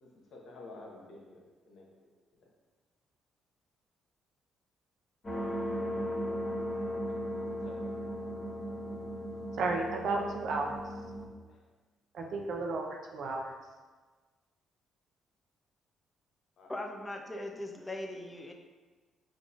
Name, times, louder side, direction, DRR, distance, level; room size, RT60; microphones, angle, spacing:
voice 1, 0.0-1.9 2.4-2.5 7.3-7.9 11.5-11.6 16.6-16.7, left 2 dB, 65° left, 0.8 m, -51 dB
sound 1, 5.2-11.3, equal, 40° left, 1.1 m, -37 dB
voice 2, 9.6-10.7 12.1-12.9 13.1-13.5, right 3 dB, 65° right, 0.5 m, -33 dB
voice 3, 16.7-18.5, left 1 dB, 20° left, 0.6 m, -39 dB
5.1 x 2.4 x 2.4 m
hypercardioid pair, 50°, 0 cm